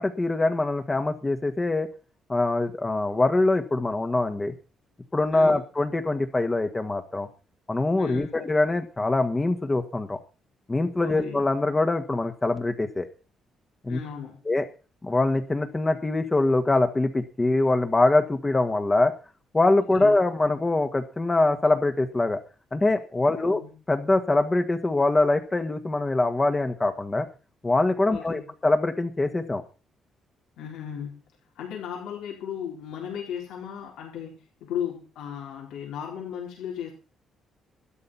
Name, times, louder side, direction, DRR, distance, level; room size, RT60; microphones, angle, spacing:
voice 1, 0.0-1.9 2.3-4.5 5.1-7.3 7.7-10.2 10.7-13.1 13.8-14.0 14.4-14.6 15.0-19.1 19.5-22.4 22.7-23.6 23.9-27.3 27.6-29.6, left 2 dB, 20° left, 6 dB, 1.6 m, -23 dB
voice 2, 8.0-8.3 11.0-11.4 13.9-14.4 20.0-20.1 23.5-23.7 28.1-28.4 30.6-31.2 31.6-36.9, left 9 dB, 85° left, -1 dB, 4.3 m, -36 dB
13.0 x 11.0 x 5.6 m, 0.36 s
cardioid pair, 90°, 0 cm